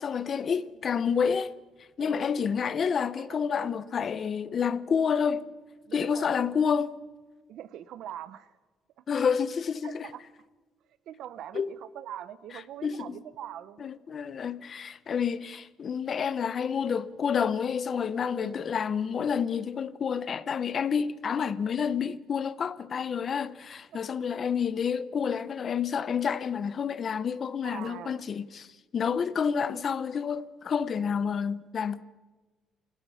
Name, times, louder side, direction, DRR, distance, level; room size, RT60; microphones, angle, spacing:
voice 1, 0.0-1.5 2.0-5.5 5.9-6.9 9.1-10.1 11.5-11.7 12.8-13.2 13.8-28.7 28.9-32.0, left 6 dB, 35° left, 0.7 m, -29 dB
voice 2, 2.0-2.4 3.1-3.8 5.9-6.4 7.5-8.6 9.0-9.1 9.8-10.3 11.1-13.9 18.3-18.7 23.9-24.0 24.4-24.5 27.6-28.2 29.5-29.8, right 11 dB, 60° right, 0.8 m, -43 dB
28.0 x 16.5 x 5.6 m
cardioid pair, 165°, 0 cm